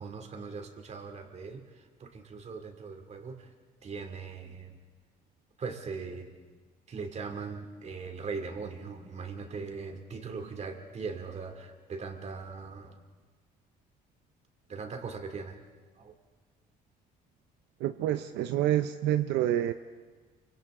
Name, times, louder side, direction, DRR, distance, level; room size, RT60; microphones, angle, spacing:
voice 1, 0.0-3.5 3.8-4.8 5.6-6.3 6.9-13.0 14.7-15.6 16.0-16.1, right 4 dB, 40° right, 5 dB, 2.6 m, -40 dB
voice 2, 17.8-19.7, right 12 dB, 85° right, 9 dB, 0.7 m, -27 dB
28.5 x 25.0 x 3.8 m, 1.4 s
cardioid pair, 110°, 17 cm